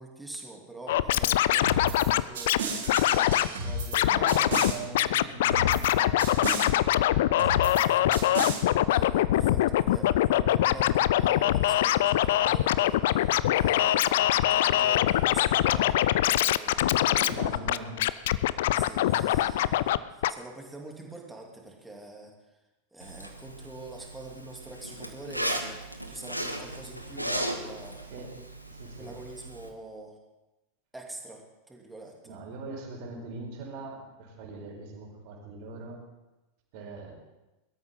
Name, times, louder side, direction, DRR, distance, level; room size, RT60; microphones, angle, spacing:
voice 1, 0.0-4.4 7.4-7.7 8.9-17.8 18.7-22.3 22.9-28.0 29.0-30.2 30.9-31.4 31.7-32.3, right 2 dB, 5° right, 0 dB, 2.9 m, -45 dB
Scratching (performance technique), 0.9-2.6 2.9-3.5 3.9-4.7 5.0-20.0 20.2-20.3, left 13 dB, 55° left, 0.5 m, -23 dB
sound 1, 1.6-2.1 2.4-4.0 4.3-4.8 5.5-5.9 6.2-6.7 7.4-7.8 8.1-8.6, right 2 dB, 60° right, 4.9 m, -33 dB
voice 2, 4.0-8.3 8.8-9.1 17.1-18.1 18.9-19.3 28.0-28.4 28.6-29.1 32.2-36.0 36.7-37.1, right 3 dB, 45° right, -1 dB, 4.7 m, -42 dB
Zipper (clothing), 23.0-29.7, right 1 dB, 90° right, 1.4 m, -36 dB
22.5 x 13.0 x 3.9 m, 1.0 s
figure-of-eight pair, 90°, 0 cm